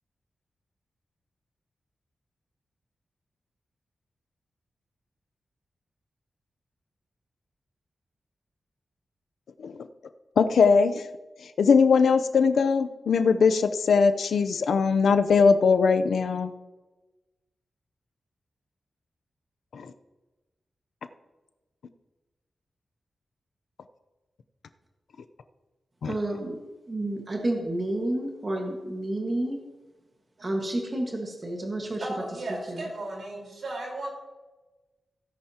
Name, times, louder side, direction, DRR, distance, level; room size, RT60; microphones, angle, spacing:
voice 1, 10.4-11.1 11.6-16.5 19.7-19.9 26.0-26.1, left 5 dB, 80° left, 9 dB, 0.6 m, -21 dB
voice 2, 26.0-26.6 26.9-29.6 30.4-32.1 32.7-32.9, right 1 dB, 25° right, 0 dB, 1.6 m, -30 dB
voice 3, 32.0-34.1, right 2 dB, 65° right, -1 dB, 4.2 m, -35 dB
17.0 x 10.5 x 2.9 m, 1.2 s
wide cardioid pair, 175°, 0 cm